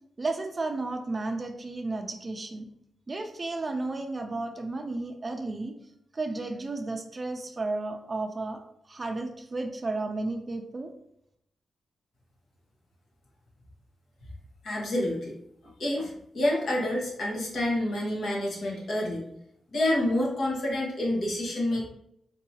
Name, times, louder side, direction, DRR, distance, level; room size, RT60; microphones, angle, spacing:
voice 1, 0.2-2.7 3.1-5.7 6.1-8.6 8.9-10.9, right 2 dB, 30° right, 5 dB, 0.4 m, -33 dB
voice 2, 14.6-15.3 15.8-19.3 19.7-21.9, left 1 dB, 65° left, -3 dB, 1.2 m, -28 dB
3.8 x 2.8 x 2.8 m, 0.76 s
wide cardioid pair, 120°, 0 cm